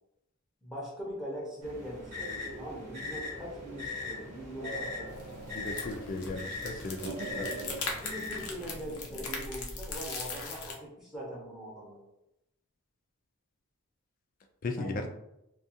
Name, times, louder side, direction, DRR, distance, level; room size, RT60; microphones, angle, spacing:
voice 1, 0.6-5.1 8.0-12.0 14.8-15.1, equal, ahead, -5 dB, 0.7 m, -41 dB
sound 1, 1.6-8.7, left 4 dB, 30° right, 0.9 m, -41 dB
sound 2, 2.2-4.0 4.4-6.1 6.4-7.8 8.6-9.4, right 3 dB, 80° right, 0.5 m, -44 dB
sound 3, 5.1-10.7, left 3 dB, 85° left, 0.6 m, -40 dB
voice 2, 5.5-7.5 14.6-15.1, left 2 dB, 40° left, 4 dB, 0.3 m, -36 dB
2.4 x 2.3 x 2.7 m, 0.84 s
head